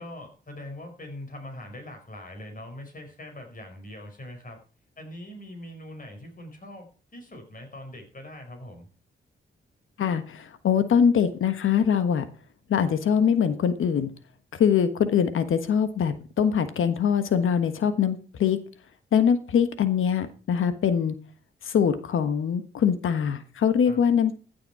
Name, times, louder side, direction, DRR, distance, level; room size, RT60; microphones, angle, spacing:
voice 1, 0.0-4.6 5.0-8.9 23.8-24.0, left 1 dB, 40° left, 4 dB, 5.1 m, -42 dB
voice 2, 10.0-12.2 12.7-14.1 14.6-18.6 19.1-21.2 21.6-24.4, left 7 dB, 75° left, 11 dB, 1.3 m, -23 dB
15.0 x 7.0 x 4.8 m, 0.37 s
cardioid pair, 60°, 21 cm